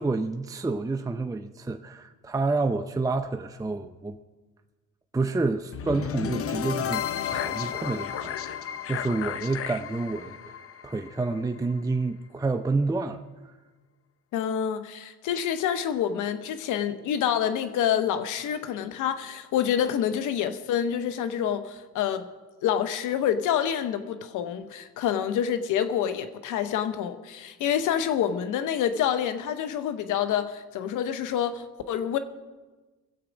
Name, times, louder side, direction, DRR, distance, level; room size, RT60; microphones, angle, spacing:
voice 1, 0.0-4.2 5.1-10.6 10.8-13.2, right 3 dB, 10° right, 0.6 m, -29 dB
sound 1, 5.7-11.8, left 9 dB, 50° left, 0.6 m, -33 dB
voice 2, 14.3-22.3 22.6-32.2, left 9 dB, 90° left, 0.9 m, -27 dB
21.0 x 8.1 x 5.1 m
cardioid pair, 90°, 30 cm